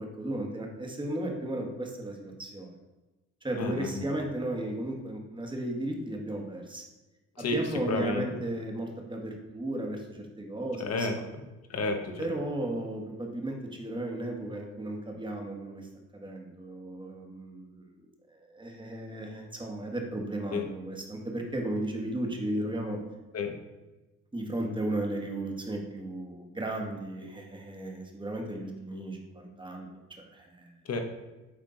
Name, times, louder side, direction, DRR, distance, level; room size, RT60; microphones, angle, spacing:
voice 1, 0.0-2.7 3.4-6.8 7.4-11.2 12.2-17.9 18.3-23.0 24.3-30.7, right 1 dB, 15° right, 1 dB, 1.5 m, -35 dB
voice 2, 3.6-4.1 7.4-7.6 7.9-8.3 10.8-11.4 11.7-12.3 20.5-20.6 23.3-23.5 30.9-31.0, left 3 dB, 55° left, 5 dB, 1.2 m, -31 dB
9.5 x 3.6 x 3.9 m, 1.1 s
cardioid pair, 90°, 30 cm